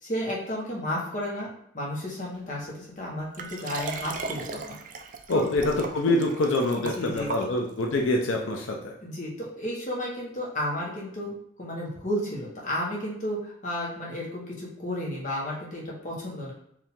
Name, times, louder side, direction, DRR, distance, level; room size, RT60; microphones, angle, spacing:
voice 1, 0.0-1.5 1.7-4.6 5.3-5.5 7.0-7.3 9.0-16.5, left 1 dB, 40° left, -4 dB, 1.3 m, -32 dB
Liquid, 3.3-7.9 8.6-8.7, right 4 dB, 40° right, 0.4 m, -38 dB
voice 2, 5.3-8.9, left 2 dB, 90° left, 0 dB, 0.6 m, -25 dB
4.8 x 2.8 x 3.6 m, 0.72 s
head